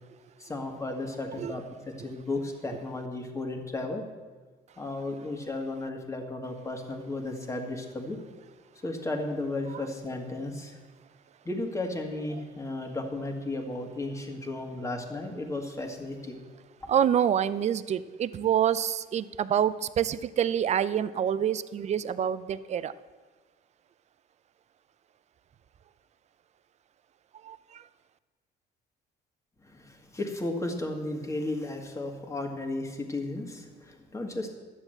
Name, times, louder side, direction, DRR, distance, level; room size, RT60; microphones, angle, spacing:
voice 1, 0.4-4.0 4.8-8.2 8.8-10.8 11.5-16.4 29.7-34.5, left 2 dB, 15° left, 3 dB, 1.9 m, -34 dB
voice 2, 16.9-22.9 27.5-27.6, right 9 dB, 40° right, 16 dB, 0.5 m, -27 dB
11.5 x 7.4 x 7.8 m, 1.4 s
cardioid pair, 110°, 17 cm